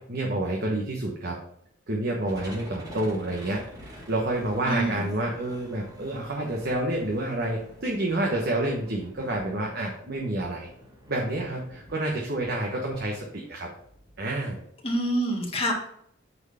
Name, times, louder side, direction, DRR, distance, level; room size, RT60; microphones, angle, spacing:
voice 1, 0.1-1.4 1.9-10.7 11.1-13.7 14.2-14.6, right 1 dB, 55° right, -1 dB, 1.2 m, -29 dB
sound 1, 2.2-14.6, equal, 20° right, 1.9 m, -48 dB
voice 2, 4.6-5.0 14.8-15.7, right 1 dB, 30° left, -1 dB, 2.0 m, -26 dB
8.5 x 4.6 x 4.3 m, 0.71 s
head